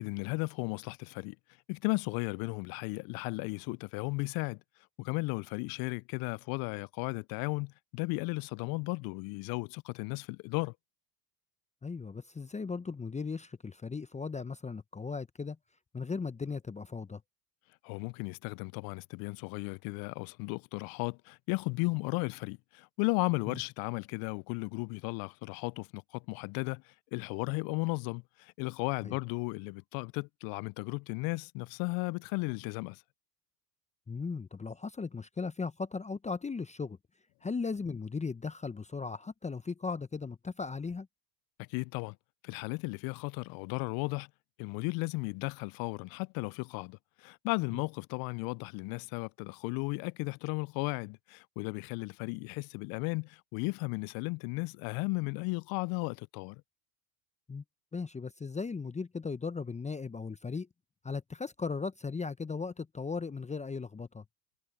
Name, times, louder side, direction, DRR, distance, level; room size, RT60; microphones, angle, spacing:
voice 1, 0.0-1.4 1.7-4.6 5.0-10.7 17.8-33.0 41.6-42.2 42.4-44.3 44.6-56.6, left 28 dB, 50° left, 0.5 m, -35 dB
voice 2, 11.8-15.6 15.9-17.2 23.5-23.6 29.0-29.2 34.1-37.0 37.4-41.1 47.7-47.8 57.5-57.6 57.9-60.7 61.0-64.2, left 4 dB, 15° left, 1.0 m, -37 dB
hypercardioid pair, 85°, 48 cm